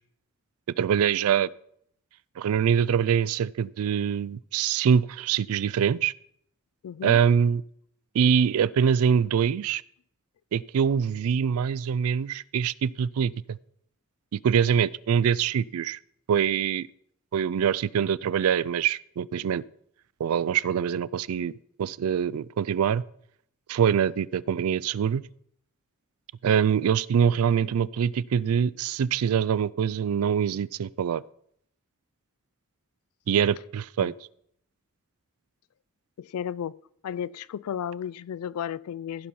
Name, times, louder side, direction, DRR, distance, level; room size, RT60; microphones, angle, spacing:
voice 1, 0.8-1.5 2.4-6.1 7.0-7.6 8.1-9.8 10.5-13.6 14.3-16.0 16.3-16.9 17.3-19.6 20.2-21.5 21.8-23.0 23.7-25.2 26.4-31.2 33.3-34.1, right 7 dB, 80° right, 0.3 m, -24 dB
voice 2, 6.8-7.2 34.0-34.1 36.2-36.8 37.0-39.3, left 9 dB, 85° left, 0.3 m, -33 dB
16.0 x 5.4 x 4.3 m
head